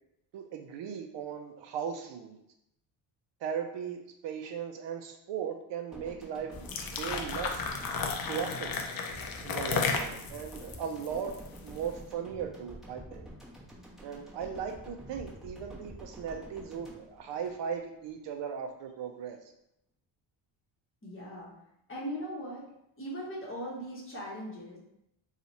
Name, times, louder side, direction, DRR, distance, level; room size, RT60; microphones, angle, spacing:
voice 1, 0.3-2.4 3.4-6.7 7.0-7.7 8.3-8.7 9.4-11.4 11.6-13.3 14.0-19.4, right 7 dB, 60° right, 5 dB, 0.5 m, -37 dB
sound 1, 5.9-18.1, equal, ahead, 0.9 m, -48 dB
sound 2, 6.5-11.8, left 5 dB, 45° left, 0.5 m, -34 dB
voice 2, 21.0-21.5 21.9-22.7 23.0-24.8, equal, 25° left, -4 dB, 1.1 m, -39 dB
2.8 x 2.4 x 4.0 m, 0.82 s
cardioid pair, 125°, 49 cm